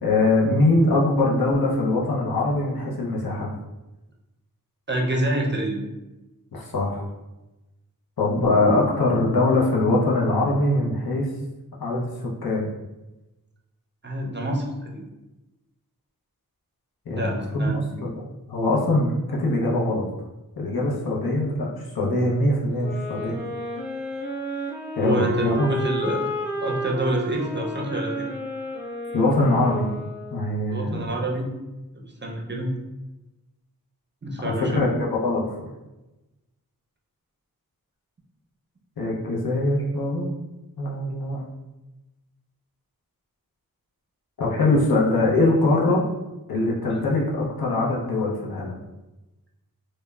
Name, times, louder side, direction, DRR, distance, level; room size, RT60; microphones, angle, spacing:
voice 1, 0.0-3.5 6.5-7.0 8.2-11.3 11.8-12.7 17.1-20.0 20.6-23.3 25.0-25.7 29.1-29.9 30.3-31.1 34.4-35.6 39.0-40.3 40.8-41.5 44.4-46.0 46.5-48.7, left 2 dB, 80° left, -3 dB, 0.7 m, -22 dB
voice 2, 4.9-5.8 14.0-15.0 17.2-17.8 25.0-26.3 26.6-28.3 30.6-31.5 31.9-32.7 34.2-34.8, right 1 dB, 30° right, 0 dB, 0.5 m, -27 dB
sound 1, 22.8-30.6, right 1 dB, 30° left, 0.7 m, -31 dB
3.0 x 2.1 x 2.2 m, 1.0 s
wide cardioid pair, 50°, 36 cm